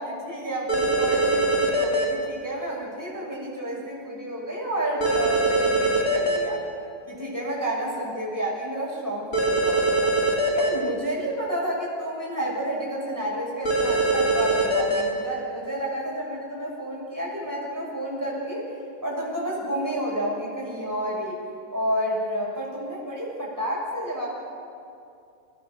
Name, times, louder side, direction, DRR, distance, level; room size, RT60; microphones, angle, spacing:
voice 1, 0.0-6.6 7.1-10.1 10.5-18.7 19.0-21.4 21.7-24.3, right 1 dB, 10° right, -4 dB, 6.8 m, -30 dB
sound 1, 0.7-2.0 5.0-6.4 9.3-10.7 13.6-15.0, right 2 dB, 40° left, 3.6 m, -22 dB
29.0 x 19.5 x 6.8 m, 2.5 s
omnidirectional pair, 2.4 m